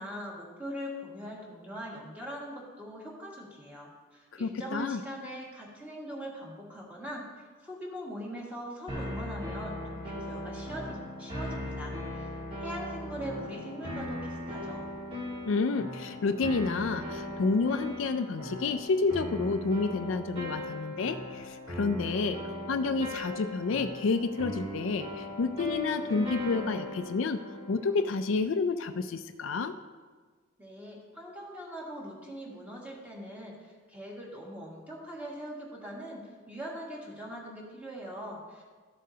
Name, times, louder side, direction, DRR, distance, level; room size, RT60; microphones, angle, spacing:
voice 1, 0.0-7.2 7.6-12.3 12.6-14.9 30.6-38.6, equal, 10° right, -5 dB, 1.8 m, -41 dB
voice 2, 4.3-5.0 15.5-27.4 27.7-29.8, left 4 dB, 70° left, 9 dB, 0.4 m, -29 dB
sound 1, 8.9-28.1, left 1 dB, 25° right, 1.7 m, -38 dB
13.5 x 7.4 x 2.8 m, 1.5 s
head